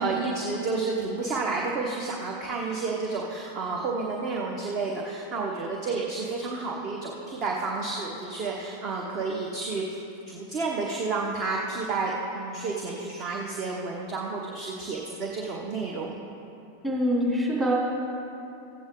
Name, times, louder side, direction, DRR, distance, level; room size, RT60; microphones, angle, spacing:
voice 1, 0.0-9.8 10.3-16.2, right 3 dB, 35° right, -1 dB, 1.0 m, -30 dB
voice 2, 16.8-17.7, equal, 10° right, -6 dB, 2.8 m, -24 dB
14.5 x 8.5 x 3.8 m, 2.9 s
figure-of-eight pair, 90°, 0 cm